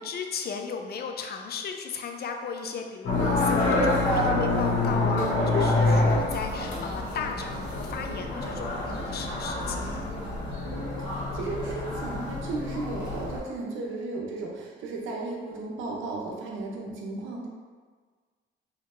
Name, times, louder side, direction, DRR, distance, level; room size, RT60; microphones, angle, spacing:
voice 1, 0.0-10.1, left 5 dB, 55° left, 4 dB, 0.5 m, -36 dB
sound 1, 3.0-13.4, left 2 dB, 70° left, 1.2 m, -27 dB
voice 2, 6.1-6.6 10.6-17.5, right 3 dB, 85° right, -1 dB, 0.7 m, -35 dB
4.3 x 2.8 x 2.5 m, 1.5 s
cardioid pair, 90°, 20 cm